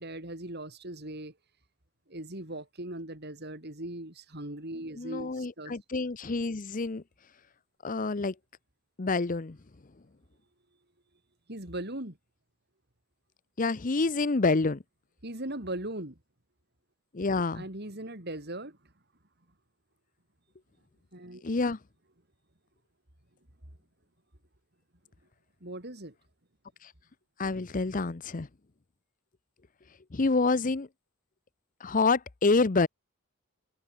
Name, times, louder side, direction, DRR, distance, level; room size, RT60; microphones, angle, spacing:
voice 1, 0.0-1.3 2.1-5.7 11.5-12.2 15.2-16.2 17.5-18.9 21.1-21.5 25.6-26.1, right 1 dB, 50° right, 4.3 m, -39 dB
voice 2, 5.0-7.0 7.8-8.3 9.0-9.6 13.6-14.8 17.1-17.6 21.4-21.8 27.4-28.5 30.1-30.9 31.8-32.9, left 3 dB, 40° left, 0.7 m, -27 dB
head